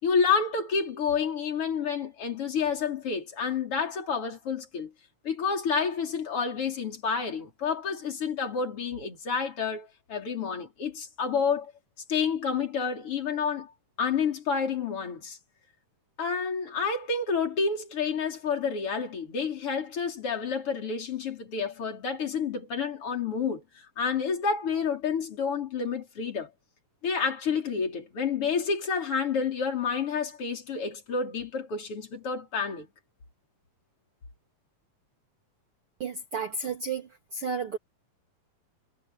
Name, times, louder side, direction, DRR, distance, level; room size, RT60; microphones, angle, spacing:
voice 1, 0.0-4.9 5.2-11.7 12.1-13.7 14.0-15.4 16.2-26.5 27.0-32.9, left 5 dB, 40° left, 5.4 m, -29 dB
voice 2, 36.0-37.8, right 5 dB, 40° right, 3.8 m, -32 dB
omnidirectional pair, 4.0 m